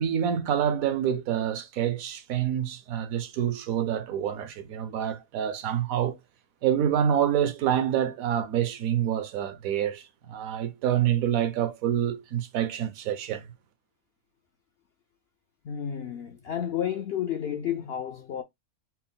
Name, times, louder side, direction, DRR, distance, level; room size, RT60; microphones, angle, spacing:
voice 1, 0.0-6.2 6.6-13.5, right 9 dB, 75° right, 1.0 m, -27 dB
voice 2, 15.6-18.4, left 9 dB, 70° left, 0.6 m, -31 dB
4.2 x 2.1 x 3.6 m
omnidirectional pair, 1.5 m